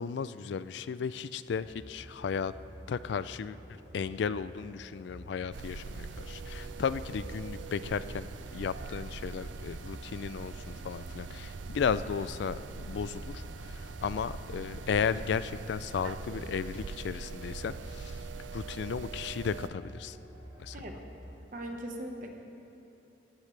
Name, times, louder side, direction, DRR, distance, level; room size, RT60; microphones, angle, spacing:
voice 1, 0.0-2.5 2.9-18.2 18.5-20.2 20.6-20.8, left 6 dB, 70° left, 15 dB, 0.3 m, -35 dB
sound 1, 1.5-21.3, equal, 30° right, 3.2 m, -50 dB
sound 2, 5.5-19.7, right 4 dB, 80° right, 0.5 m, -42 dB
voice 2, 21.5-22.3, right 1 dB, 45° right, 3 dB, 1.2 m, -39 dB
17.0 x 14.0 x 3.3 m, 3.0 s
head